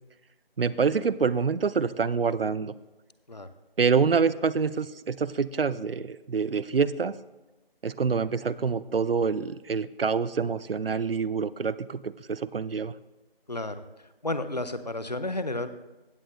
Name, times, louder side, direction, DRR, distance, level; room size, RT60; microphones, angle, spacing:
voice 1, 0.6-2.7 3.8-7.2 7.8-12.9, right 5 dB, 70° right, 17 dB, 0.5 m, -26 dB
voice 2, 14.2-15.7, left 2 dB, 45° left, 12 dB, 0.6 m, -31 dB
15.5 x 8.5 x 2.6 m, 1.1 s
figure-of-eight pair, 175°, 30 cm